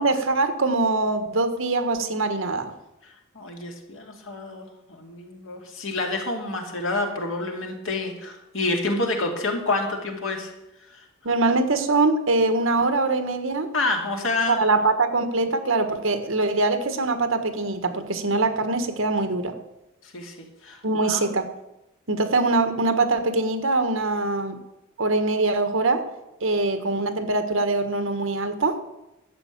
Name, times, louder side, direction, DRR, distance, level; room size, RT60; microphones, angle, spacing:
voice 1, 0.0-2.7 11.2-13.7 14.5-19.6 20.8-21.5 22.1-24.6 25.0-26.0 26.4-28.8, right 3 dB, 70° right, 9 dB, 1.4 m, -23 dB
voice 2, 3.0-10.5 10.9-11.0 13.7-14.6 20.0-21.2, left 2 dB, 65° left, 2 dB, 2.6 m, -28 dB
12.0 x 7.3 x 8.5 m, 0.94 s
head